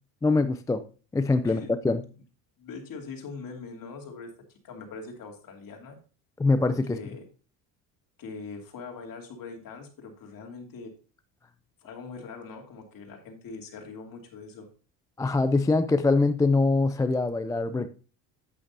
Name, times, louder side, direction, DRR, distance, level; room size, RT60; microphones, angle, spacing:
voice 1, 0.2-0.8 1.1-2.0 6.4-7.0 15.2-17.9, left 3 dB, 10° left, 10 dB, 0.4 m, -23 dB
voice 2, 2.6-4.3 4.6-6.0 6.9-7.3 8.2-10.9 11.8-14.7, left 4 dB, 50° left, 2 dB, 2.7 m, -42 dB
8.9 x 8.5 x 2.7 m, 0.36 s
supercardioid pair, 90°, 45 cm